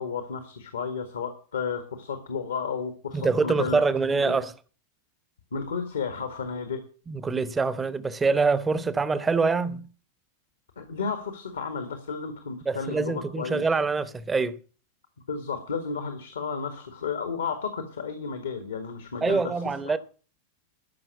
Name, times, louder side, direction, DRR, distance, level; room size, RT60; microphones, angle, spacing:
voice 1, 0.0-3.9 4.1-4.5 5.5-6.8 10.8-13.6 15.3-19.4, left 5 dB, 70° left, 1.8 m, -32 dB
voice 2, 3.1-4.5 7.1-9.9 12.7-14.6 19.2-20.0, right 4 dB, 15° right, 0.9 m, -25 dB
13.5 x 6.1 x 7.9 m
figure-of-eight pair, 90°, 0 cm